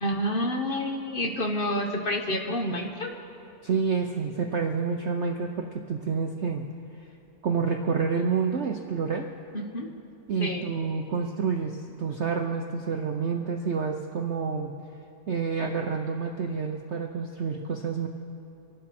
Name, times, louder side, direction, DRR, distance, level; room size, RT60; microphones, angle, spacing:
voice 1, 0.0-3.1 9.5-9.9 10.4-10.7, equal, 35° left, 2 dB, 1.0 m, -29 dB
voice 2, 3.6-6.6 7.4-9.3 10.3-14.7 15.3-18.1, right 5 dB, 75° right, 4 dB, 0.6 m, -28 dB
24.5 x 11.5 x 4.2 m, 2.7 s
omnidirectional pair, 2.1 m